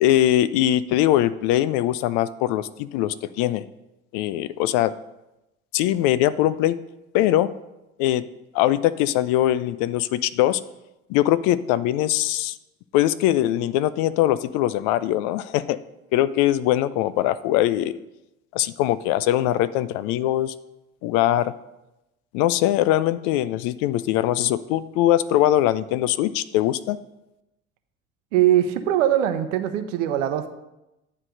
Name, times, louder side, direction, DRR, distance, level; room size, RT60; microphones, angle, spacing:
voice 1, 0.0-3.7 4.1-4.9 5.7-6.8 7.1-7.5 8.0-8.2 8.5-10.6 11.1-12.6 12.9-15.8 16.1-18.0 18.5-20.5 21.0-21.5 22.3-27.0, left 13 dB, 50° left, 16 dB, 0.4 m, -21 dB
voice 2, 28.3-30.5, right 11 dB, 65° right, 9 dB, 0.8 m, -21 dB
9.6 x 3.3 x 6.4 m, 0.94 s
figure-of-eight pair, 65°, 40 cm